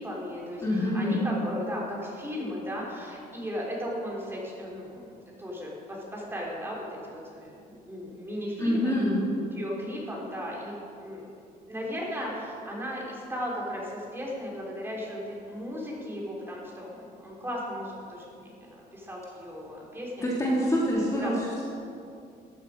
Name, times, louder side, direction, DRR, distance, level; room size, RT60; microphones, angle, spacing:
voice 1, 0.0-8.9 9.5-10.7 11.0-11.3 11.7-20.5 21.2-21.3, equal, 15° right, -3 dB, 3.8 m, -36 dB
voice 2, 0.6-1.2 8.6-9.2 20.2-21.6, left 1 dB, 20° left, -5 dB, 2.7 m, -26 dB
14.0 x 11.5 x 5.1 m, 2.5 s
cardioid pair, 110°, 17 cm